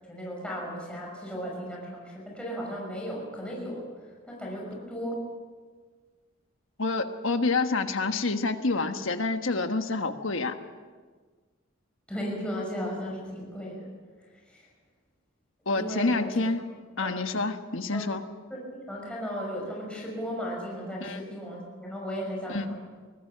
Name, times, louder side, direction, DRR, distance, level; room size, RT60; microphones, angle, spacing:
voice 1, 0.1-5.3 12.1-13.9 14.5-14.7 15.7-16.3 17.0-17.2 17.9-18.1 18.5-22.8, equal, 5° left, -3 dB, 6.1 m, -35 dB
voice 2, 6.8-10.5 15.7-16.6 17.0-18.2 21.0-21.2 22.5-22.7, left 3 dB, 70° left, 7 dB, 1.4 m, -28 dB
24.5 x 18.0 x 6.0 m, 1.5 s
head